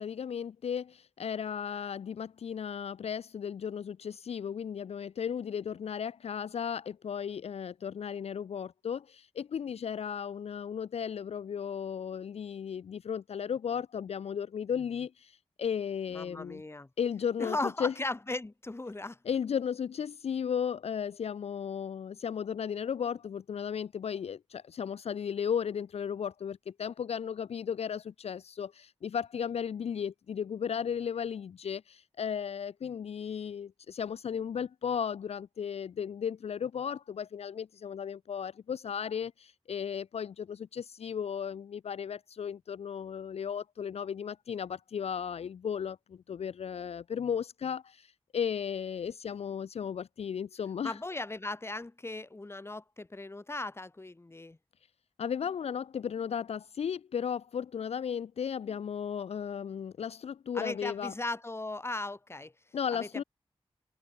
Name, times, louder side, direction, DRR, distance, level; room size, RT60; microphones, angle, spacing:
voice 1, 0.0-16.6 17.0-17.9 19.3-51.0 55.2-61.1 62.7-63.2, left 7 dB, 70° left, 0.4 m, -35 dB
voice 2, 16.1-16.9 17.4-19.2 50.8-54.6 60.5-62.5 62.9-63.2, left 2 dB, 25° left, 0.8 m, -37 dB
cardioid pair, 45°, 11 cm